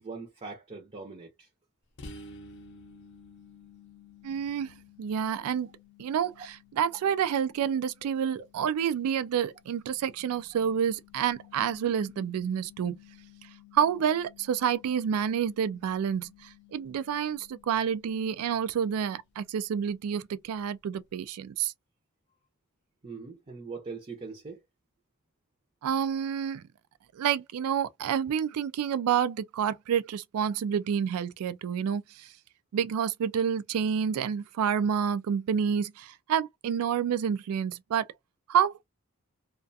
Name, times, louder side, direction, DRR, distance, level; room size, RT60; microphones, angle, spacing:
voice 1, 0.0-1.5 23.0-24.6, right 4 dB, 30° right, 0.5 m, -41 dB
sound 1, 2.0-19.5, left 4 dB, 50° left, 0.5 m, -54 dB
voice 2, 4.2-5.7 6.0-6.3 6.8-13.0 13.7-21.7 25.8-26.6 27.1-32.3 32.7-38.1 38.5-38.8, right 8 dB, 80° right, 0.3 m, -28 dB
2.3 x 2.3 x 2.6 m
head